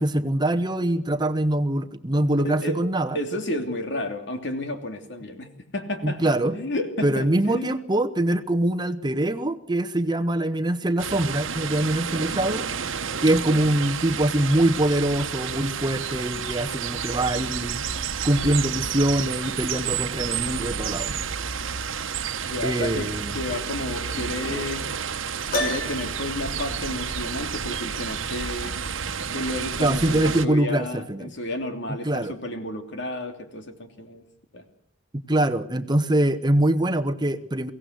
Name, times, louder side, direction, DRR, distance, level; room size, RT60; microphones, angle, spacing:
voice 1, 0.0-3.2 6.0-6.5 7.0-12.6 13.2-17.8 18.2-21.2 22.6-23.3 29.8-31.3 32.0-32.3 35.1-37.7, right 1 dB, 20° right, 8 dB, 1.0 m, -23 dB
voice 2, 2.4-2.8 3.1-7.7 13.5-13.6 22.4-24.9 25.5-28.7 29.3-34.2 34.5-34.6, left 1 dB, 65° left, 6 dB, 2.9 m, -32 dB
sound 1, 11.0-30.5, right 7 dB, 85° right, 1.1 m, -30 dB
Piano, 25.5-26.4, left 1 dB, 50° left, 4.4 m, -28 dB
23.5 x 17.0 x 8.1 m, 0.67 s
head